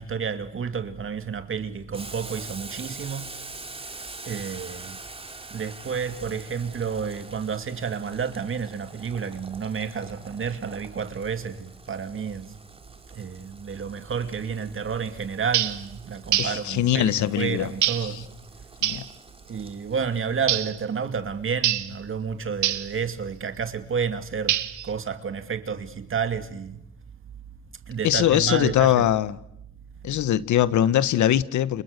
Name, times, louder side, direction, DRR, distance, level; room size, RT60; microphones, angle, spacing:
voice 1, 0.0-3.3 4.3-5.0 5.5-12.5 13.1-18.3 19.5-26.8 27.9-29.0, right 6 dB, 45° right, 2.3 m, -30 dB
Boiling, 1.9-20.4, right 3 dB, 20° right, 2.9 m, -44 dB
sound 1, 15.5-15.8 16.3-16.6 17.8-18.1 18.8-19.1 20.5-20.8 21.6-21.9 22.6-22.9 24.5-24.9, right 12 dB, 75° right, 1.5 m, -25 dB
voice 2, 16.4-17.7 18.0-18.2 18.8-19.0 28.0-29.4 30.0-31.8, left 11 dB, 75° left, 1.2 m, -22 dB
29.5 x 28.5 x 6.7 m
cardioid pair, 90°, 30 cm